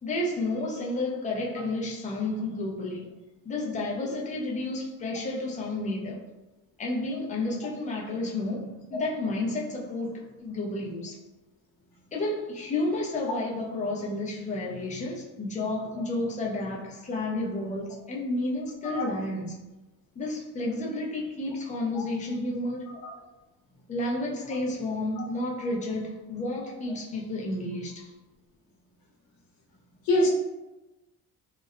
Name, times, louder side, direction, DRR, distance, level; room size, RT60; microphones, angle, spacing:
voice 1, 0.0-3.2 3.4-6.2 6.8-11.2 12.1-19.6 20.2-22.9 23.9-28.1, left 2 dB, 20° left, -2 dB, 0.4 m, -31 dB
voice 2, 18.8-19.1 21.9-22.0 23.0-23.1 30.1-30.3, left 1 dB, 65° left, -1 dB, 0.7 m, -24 dB
2.8 x 2.0 x 2.4 m, 1.1 s
cardioid pair, 140°, 38 cm